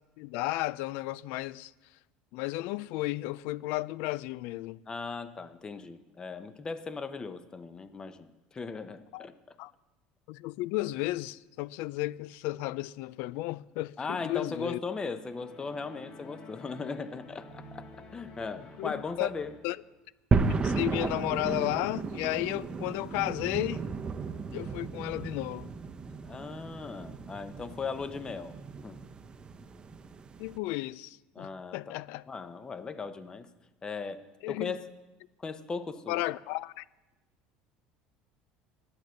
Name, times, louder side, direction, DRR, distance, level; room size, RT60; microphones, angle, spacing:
voice 1, 0.2-1.7 2.3-4.8 9.1-9.2 9.6-9.7 10.3-14.8 18.8-19.3 19.6-19.8 20.6-23.9 24.5-25.7 30.4-32.2 34.4-34.7 36.1-36.8, left 18 dB, 75° left, 0.3 m, -33 dB
voice 2, 4.9-9.6 14.0-17.9 18.1-19.5 26.1-28.6 28.8-29.0 31.3-31.9 32.3-33.5 33.8-34.8 35.4-36.2, left 4 dB, 25° left, 0.8 m, -38 dB
sound 1, 15.2-19.9, left 1 dB, 55° left, 2.7 m, -50 dB
sound 2, 20.3-30.6, right 4 dB, 30° right, 0.7 m, -34 dB
11.0 x 9.0 x 6.4 m
supercardioid pair, 110°, 3 cm